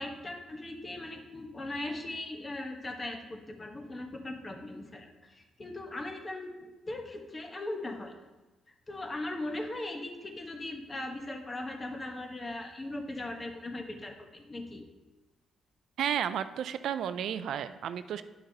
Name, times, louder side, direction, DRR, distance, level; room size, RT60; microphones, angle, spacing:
voice 1, 0.0-8.1 8.7-14.9, left 2 dB, 25° left, 3 dB, 1.0 m, -39 dB
voice 2, 16.0-18.2, right 9 dB, 70° right, 12 dB, 0.3 m, -32 dB
10.0 x 5.8 x 2.8 m, 1.1 s
cardioid pair, 90°, 0 cm